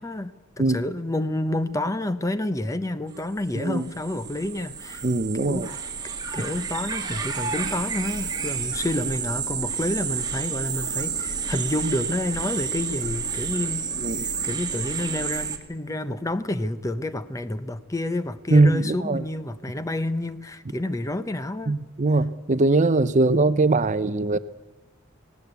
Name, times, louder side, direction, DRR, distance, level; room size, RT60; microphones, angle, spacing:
voice 1, 0.0-5.0 5.3-5.7 6.3-21.8, left 1 dB, 15° left, 13 dB, 0.7 m, -29 dB
sound 1, 3.2-3.3 3.4-15.6, right 6 dB, 20° right, 1.7 m, -30 dB
voice 2, 5.0-5.7 14.0-14.2 18.5-19.2 21.7-24.4, right 2 dB, 40° right, 14 dB, 0.6 m, -21 dB
18.5 x 17.0 x 8.2 m, 1.2 s
head